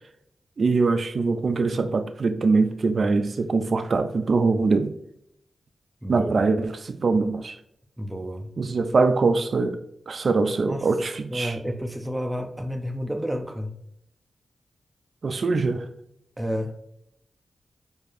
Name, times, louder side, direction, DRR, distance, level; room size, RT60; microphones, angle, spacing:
voice 1, 0.6-4.9 6.1-7.6 8.6-9.8 10.1-11.6 15.2-15.9, right 4 dB, 65° right, 0.3 m, -23 dB
voice 2, 6.0-6.3 8.0-8.5 10.6-10.9 11.3-13.7 16.4-16.7, equal, 15° right, 0.6 m, -30 dB
4.6 x 2.6 x 2.4 m
cardioid pair, 55°, 0 cm